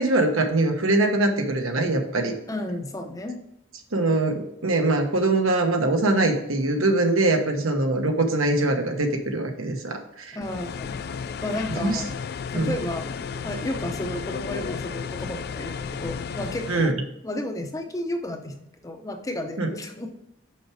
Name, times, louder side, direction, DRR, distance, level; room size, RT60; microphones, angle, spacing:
voice 1, 0.0-2.3 3.9-10.4 11.8-12.0 12.5-12.8 16.7-16.9 19.6-19.7, right 2 dB, 80° right, 4 dB, 1.2 m, -23 dB
voice 2, 2.5-3.4 10.3-11.0 11.4-12.2 12.5-13.2 13.4-20.2, left 1 dB, 15° left, 5 dB, 0.6 m, -32 dB
sound 1, 10.4-16.9, left 6 dB, 50° left, 0.3 m, -33 dB
6.3 x 5.8 x 4.8 m, 0.81 s
head